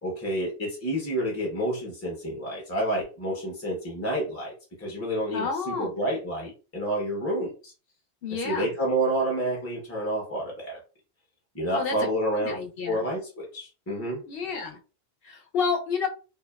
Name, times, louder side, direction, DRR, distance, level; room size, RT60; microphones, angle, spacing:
voice 1, 0.0-4.5 4.8-7.7 8.3-10.8 11.5-14.2, right 1 dB, 15° left, -3 dB, 0.6 m, -29 dB
voice 2, 5.3-6.0 8.2-8.7 11.7-12.0 12.4-13.0 14.3-14.8 15.2-16.1, left 5 dB, 60° left, 3 dB, 0.8 m, -30 dB
2.8 x 2.1 x 2.2 m, 0.33 s
omnidirectional pair, 1.2 m